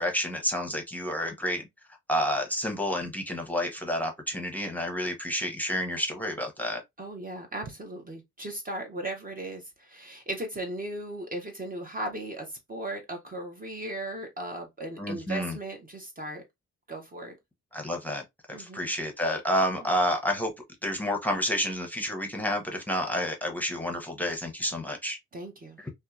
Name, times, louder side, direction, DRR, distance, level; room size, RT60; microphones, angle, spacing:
voice 1, 0.0-1.6 2.1-6.8 15.0-15.6 17.7-18.2 18.5-20.5 20.8-25.2 25.8-25.9, equal, 5° left, 0.8 m, -29 dB
voice 2, 7.0-16.4 16.9-17.4 18.5-18.9 19.8-19.9 25.3-25.8, right 1 dB, 30° right, 0.7 m, -37 dB
2.7 x 2.2 x 2.3 m
supercardioid pair, 60°, 29 cm